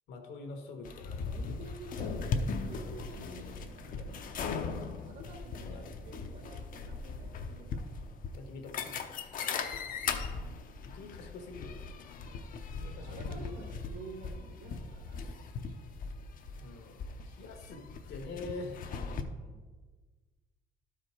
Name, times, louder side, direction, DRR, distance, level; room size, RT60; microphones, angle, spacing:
voice 1, 0.1-1.3 5.6-5.9 8.3-9.4 10.8-12.0 12.8-13.5 16.6-18.8, left 3 dB, 80° left, 4 dB, 1.5 m, -45 dB
sound 1, 0.9-19.2, left 5 dB, 55° left, 0.7 m, -39 dB
voice 2, 1.2-7.9 9.2-9.3 12.2-12.5 12.9-15.8 19.2-19.7, right 3 dB, 70° right, 2 dB, 2.0 m, -51 dB
11.5 x 5.0 x 4.4 m, 1.4 s
cardioid pair, 110°, 17 cm